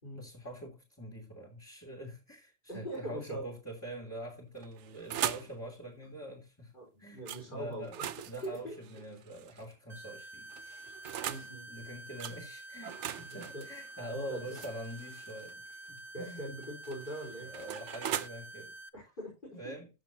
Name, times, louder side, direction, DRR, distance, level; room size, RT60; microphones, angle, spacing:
voice 1, 0.1-6.7 7.0-7.9 8.3-10.9 11.3-16.4 17.4-18.7 19.5-19.9, right 1 dB, 10° left, 2.9 m, -45 dB
voice 2, 2.7-3.5 6.0-6.1 6.7-7.9 8.2-9.0 11.3-11.7 13.3-13.6 14.0-14.6 16.1-17.5 18.9-19.8, right 1 dB, 45° left, 5.0 m, -42 dB
sound 1, 4.6-5.6 7.3-7.4 7.8-9.7 10.5-11.5 12.2-12.4 12.8-15.5 16.6-18.3, right 10 dB, 75° right, 1.0 m, -40 dB
sound 2, 9.9-18.9, right 2 dB, 30° right, 0.6 m, -48 dB
14.5 x 7.0 x 2.9 m
omnidirectional pair, 1.2 m